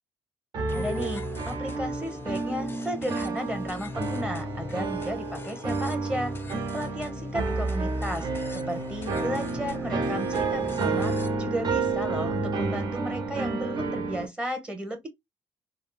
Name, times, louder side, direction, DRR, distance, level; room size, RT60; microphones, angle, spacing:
sound 1, 0.5-14.3, right 3 dB, 55° right, 0.7 m, -30 dB
sound 2, 0.7-11.3, left 4 dB, 25° left, 0.4 m, -41 dB
voice 1, 0.7-6.3 6.7-15.1, equal, 10° right, 1.0 m, -34 dB
3.5 x 2.0 x 2.3 m
cardioid pair, 100°, 9 cm